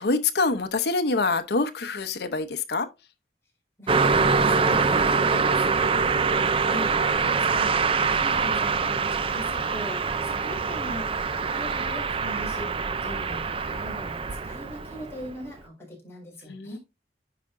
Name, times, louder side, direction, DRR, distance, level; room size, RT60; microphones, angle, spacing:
voice 1, 0.0-2.9 16.5-16.8, left 3 dB, 65° left, 0.8 m, -25 dB
voice 2, 3.8-16.8, equal, 15° left, 4.2 m, -40 dB
Car passing by, 3.9-15.3, right 5 dB, 30° right, 0.4 m, -24 dB
9.9 x 5.0 x 2.6 m
head